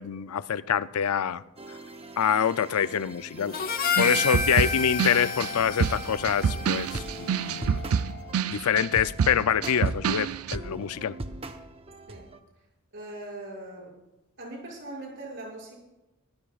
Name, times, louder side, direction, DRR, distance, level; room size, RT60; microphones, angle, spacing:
voice 1, 0.0-1.4 2.2-3.6 4.0-7.8 8.5-11.2, left 8 dB, 85° left, 0.5 m, -26 dB
sound 1, 1.6-12.4, right 2 dB, 25° right, 0.7 m, -41 dB
Harmonica, 3.5-8.0, left 4 dB, 40° left, 0.8 m, -31 dB
sound 2, 4.0-10.6, right 7 dB, 85° right, 0.4 m, -27 dB
voice 2, 12.9-13.9 14.4-15.9, right 2 dB, 55° right, 6.4 m, -40 dB
24.5 x 15.0 x 2.4 m
head